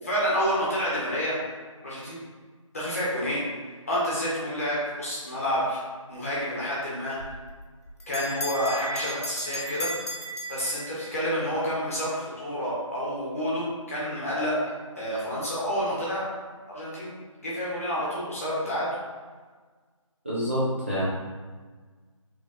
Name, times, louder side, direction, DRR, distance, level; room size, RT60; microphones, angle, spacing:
voice 1, 0.0-1.3 1.8-2.2 2.7-3.4 3.9-5.8 6.1-7.2 8.1-9.9 10.5-14.6 15.0-16.3 16.7-17.1 17.4-18.9, equal, 25° left, -8 dB, 1.0 m, -29 dB
Bell, 7.2-11.3, equal, 50° left, 0.7 m, -35 dB
voice 2, 20.2-21.0, equal, 20° right, -10 dB, 0.5 m, -27 dB
4.0 x 3.1 x 2.5 m, 1.4 s
figure-of-eight pair, 170°, 17 cm